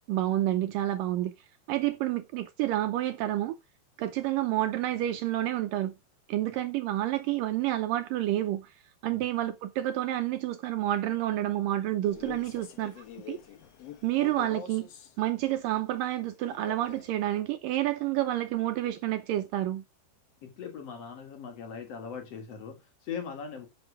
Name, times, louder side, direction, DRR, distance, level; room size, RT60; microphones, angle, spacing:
voice 1, 0.0-1.3 1.7-3.6 4.0-6.0 6.3-8.7 9.0-13.4 14.0-14.9 15.2-19.9, right 14 dB, 85° right, 1.9 m, -29 dB
Male speech man speaking, 12.0-15.2 16.5-17.2, left 7 dB, 70° left, 1.5 m, -45 dB
voice 2, 20.4-23.7, left 6 dB, 50° left, 2.3 m, -40 dB
11.0 x 6.1 x 4.8 m
omnidirectional pair, 4.8 m